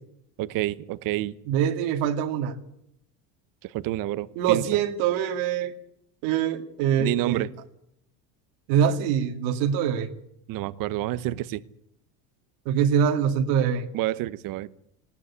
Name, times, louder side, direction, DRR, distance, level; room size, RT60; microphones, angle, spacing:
voice 1, 0.4-1.3 3.6-4.6 7.0-7.5 10.5-11.6 13.9-14.7, right 15 dB, 60° right, 1.1 m, -28 dB
voice 2, 1.5-2.6 4.4-5.7 6.2-7.5 8.7-10.1 12.7-13.9, right 8 dB, 75° right, 2.3 m, -24 dB
19.5 x 18.0 x 8.4 m
cardioid pair, 125°, 38 cm